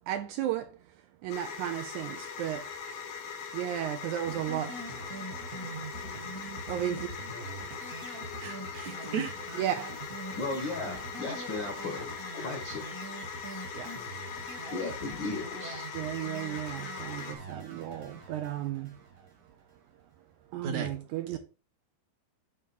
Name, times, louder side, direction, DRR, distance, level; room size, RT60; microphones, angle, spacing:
voice 1, 0.1-0.8 1.2-2.7 3.5-4.8 6.7-7.1 9.5-9.9 13.7-14.0 15.9-18.9 20.5-21.4, right 11 dB, 80° right, 1.8 m, -34 dB
sound 1, 1.3-17.3, left 6 dB, 90° left, 3.1 m, -41 dB
sound 2, 4.2-19.6, right 3 dB, 40° right, 1.3 m, -44 dB
voice 2, 8.4-9.4 20.6-20.9 21.3-21.4, right 6 dB, 65° right, 2.2 m, -35 dB
voice 3, 10.4-12.9 14.7-15.9, left 3 dB, 60° left, 1.2 m, -36 dB
9.3 x 3.6 x 5.4 m
omnidirectional pair, 3.9 m